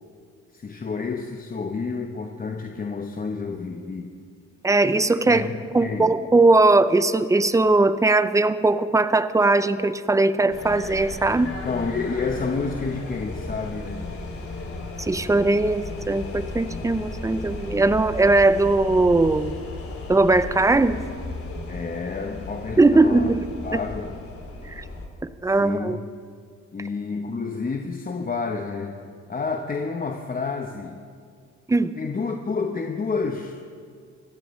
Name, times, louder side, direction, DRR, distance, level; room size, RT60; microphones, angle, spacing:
voice 1, 0.5-4.1 5.2-6.1 11.4-14.1 21.7-23.3 23.6-24.2 25.6-26.1 26.7-29.0 29.3-31.1 32.0-33.6, left 4 dB, 30° left, 4 dB, 0.9 m, -29 dB
voice 2, 4.6-5.5 5.7-11.5 15.0-19.6 20.1-21.0 22.8-23.4 23.7-23.8 24.7-24.8 25.2-26.0 31.7-31.9, right 2 dB, 10° right, 13 dB, 0.5 m, -19 dB
sound 1, 10.5-25.1, left 2 dB, 50° left, 2.7 m, -35 dB
23.5 x 14.5 x 3.2 m, 2.2 s
cardioid pair, 90°, 30 cm